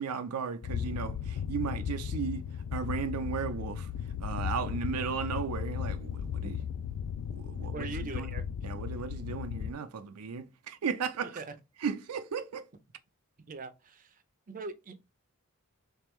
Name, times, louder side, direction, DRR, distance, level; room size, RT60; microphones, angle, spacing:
voice 1, 0.0-3.9 4.2-6.6 7.3-8.3 8.6-11.4 11.8-12.7, right 6 dB, 90° right, 0.5 m, -35 dB
sound 1, 0.6-9.7, left 8 dB, 80° left, 0.3 m, -36 dB
voice 2, 7.7-8.5 11.4-11.6 13.5-14.2 14.5-14.9, right 4 dB, 35° right, 0.5 m, -41 dB
3.6 x 3.3 x 3.1 m
head